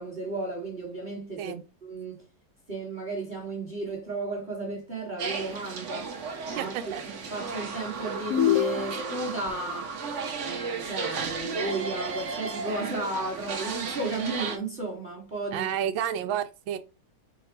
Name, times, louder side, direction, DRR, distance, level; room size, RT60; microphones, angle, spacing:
voice 1, 0.0-1.5 1.8-2.2 2.7-6.1 6.5-6.7 7.0-9.9 10.4-15.7, right 3 dB, 30° right, 1.2 m, -34 dB
sound 1, 5.2-14.6, right 4 dB, 55° right, 0.8 m, -34 dB
voice 2, 6.5-7.0 15.5-16.8, right 9 dB, 85° right, 1.4 m, -30 dB
sound 2, 8.3-9.3, left 9 dB, 75° left, 0.9 m, -25 dB
5.0 x 2.3 x 4.3 m
omnidirectional pair, 2.1 m